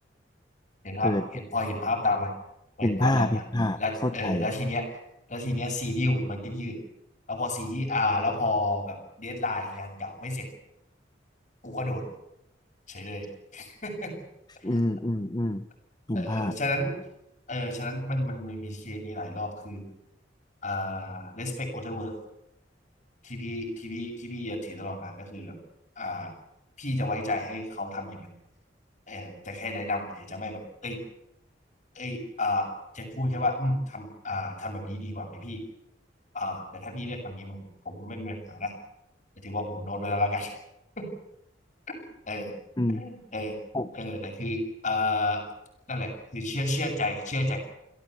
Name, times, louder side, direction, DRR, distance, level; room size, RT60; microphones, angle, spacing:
voice 1, 0.8-2.3 2.8-3.4 3.8-4.9 5.3-6.8 7.3-10.5 11.6-12.1 12.9-13.3 13.5-14.1 16.1-16.9 17.5-19.9 20.6-22.1 23.2-25.6 26.0-26.3 26.8-28.3 29.1-31.0 31.9-32.7 32.9-35.6 36.3-38.7 39.4-40.5 41.0-41.1 41.9-42.0 42.3-42.5 42.9-43.6 43.9-45.4 45.9-47.6, left 2 dB, 45° left, 3 dB, 7.9 m, -31 dB
voice 2, 2.8-4.5 14.6-15.6 16.1-16.5 42.8-43.0 43.7-43.9, left 1 dB, 25° left, 11 dB, 1.0 m, -27 dB
29.5 x 17.0 x 8.3 m, 0.84 s
head